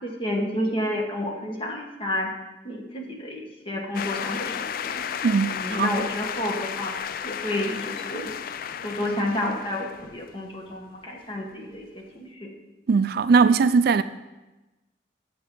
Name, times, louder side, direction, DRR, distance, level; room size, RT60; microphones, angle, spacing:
voice 1, 0.0-2.3 2.6-4.6 4.8-5.0 5.4-8.3 8.8-12.5, left 1 dB, 30° left, 1.4 m, -30 dB
sound 1, 3.9-10.7, left 8 dB, 55° left, 0.4 m, -33 dB
voice 2, 5.2-6.0 12.9-14.0, right 5 dB, 55° right, 0.3 m, -20 dB
9.0 x 7.4 x 5.3 m
head